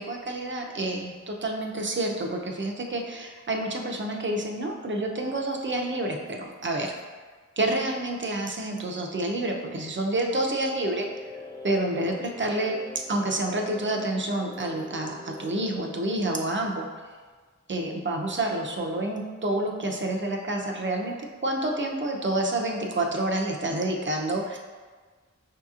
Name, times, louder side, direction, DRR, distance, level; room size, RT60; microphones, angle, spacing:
voice 1, 0.0-6.9 7.6-11.1 11.6-16.9 17.7-21.2 21.4-24.6, right 1 dB, 40° right, 1 dB, 0.5 m, -28 dB
sound 1, 10.7-15.8, left 2 dB, 10° left, 0.4 m, -42 dB
5.5 x 2.8 x 2.4 m, 1.4 s
wide cardioid pair, 55°, 30 cm